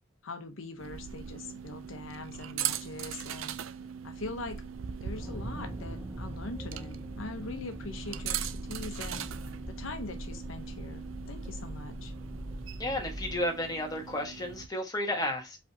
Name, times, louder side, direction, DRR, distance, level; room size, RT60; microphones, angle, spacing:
voice 1, 0.2-3.6 4.0-4.6 5.0-8.4 8.7-9.3 9.7-12.1, left 3 dB, 70° left, 0.8 m, -42 dB
sound 1, 0.8-14.7, right 9 dB, 75° right, 0.4 m, -40 dB
sound 2, 5.1-13.4, equal, 5° right, 0.6 m, -41 dB
voice 2, 12.8-15.6, left 1 dB, 20° left, 1.3 m, -32 dB
5.2 x 3.3 x 2.7 m
head